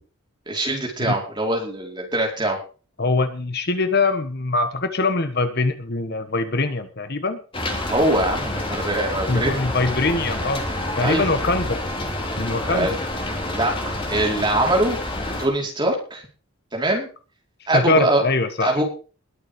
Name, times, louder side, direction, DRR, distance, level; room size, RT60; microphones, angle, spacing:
voice 1, 0.5-2.6 7.9-9.7 11.0-11.3 12.6-12.9 13.5-15.0 15.4-16.2 16.7-17.1 17.7-18.2 18.6-18.8, right 1 dB, 20° right, -1 dB, 4.9 m, -22 dB
voice 2, 3.0-7.4 9.3-10.6 11.0-11.8 12.4-12.9 17.7-18.7, left 3 dB, 45° left, 8 dB, 1.4 m, -23 dB
Rain, 7.5-15.5, left 1 dB, 25° left, 3.1 m, -28 dB
21.0 x 7.4 x 5.3 m, 0.37 s
head